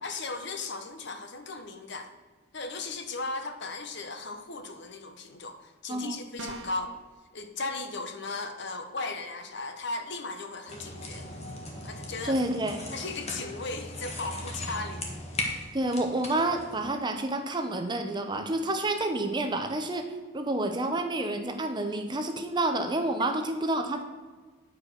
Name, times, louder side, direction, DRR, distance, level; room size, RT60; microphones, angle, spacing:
voice 1, 0.0-2.1 2.5-7.0 7.3-11.3 11.8-12.4 12.9-15.1, left 3 dB, 55° left, 7 dB, 0.9 m, -36 dB
voice 2, 5.9-6.2 12.2-12.8 15.7-24.0, right 2 dB, 20° right, 6 dB, 0.7 m, -29 dB
sound 1, 6.4-6.9, right 3 dB, 70° right, 0.9 m, -40 dB
sound 2, 10.7-16.8, left 1 dB, 30° left, 1.4 m, -38 dB
9.4 x 4.8 x 6.3 m, 1.4 s
head